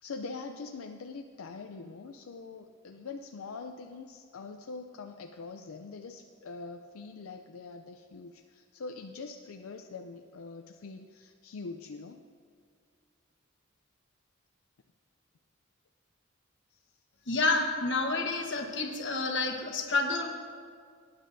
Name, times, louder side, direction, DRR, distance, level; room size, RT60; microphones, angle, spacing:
voice 1, 0.0-12.2 16.7-17.0, left 4 dB, 80° left, 5 dB, 0.5 m, -43 dB
voice 2, 17.3-20.3, left 3 dB, 60° left, 3 dB, 1.2 m, -29 dB
18.0 x 9.6 x 2.7 m, 2.1 s
head